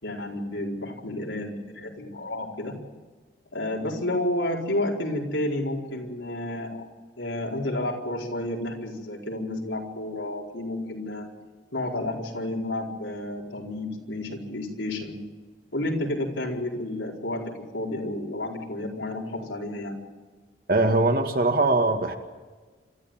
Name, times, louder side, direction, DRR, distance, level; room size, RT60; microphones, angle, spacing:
voice 1, 0.0-2.7 3.5-6.9 7.2-11.3 11.7-15.2 15.7-17.4 17.7-19.9, left 1 dB, 85° left, -1 dB, 4.7 m, -31 dB
voice 2, 20.7-22.2, right 2 dB, 50° right, 5 dB, 2.1 m, -21 dB
26.5 x 14.0 x 9.1 m, 1.4 s
head